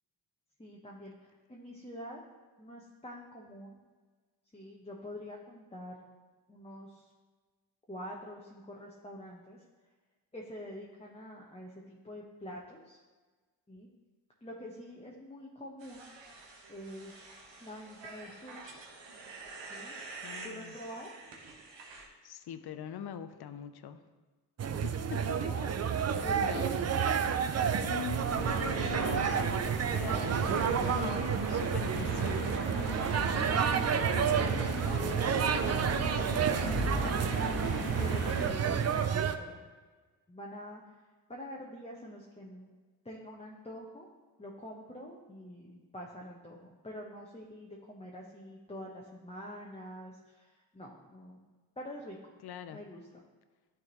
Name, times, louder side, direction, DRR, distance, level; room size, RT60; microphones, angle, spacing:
voice 1, 0.6-2.2 2.6-3.8 4.5-6.0 6.5-7.1 7.9-9.6 10.3-13.0 13.7-13.9 14.4-16.0 16.7-18.8 19.7-20.0 20.4-21.1 25.3-25.8 26.2-26.8 34.3-35.2 35.6-35.9 36.2-37.4 38.0-39.6 40.3-41.0 41.3-42.8 43.0-44.1 44.4-51.4 51.8-52.2 52.7-53.2, equal, 10° left, -3 dB, 1.0 m, -46 dB
sound 1, 15.8-22.1, right 3 dB, 60° right, 1.3 m, -48 dB
voice 2, 20.2-20.8 22.2-24.1 24.8-25.4 26.1-26.7 27.8-32.9 52.4-52.9, left 9 dB, 50° left, 10 dB, 0.6 m, -43 dB
sound 2, 24.6-39.4, right 7 dB, 35° right, 0.5 m, -30 dB
sound 3, 28.2-38.5, right 2 dB, 85° right, 1.0 m, -35 dB
10.5 x 3.7 x 3.1 m, 1.3 s
hypercardioid pair, 45°, 50 cm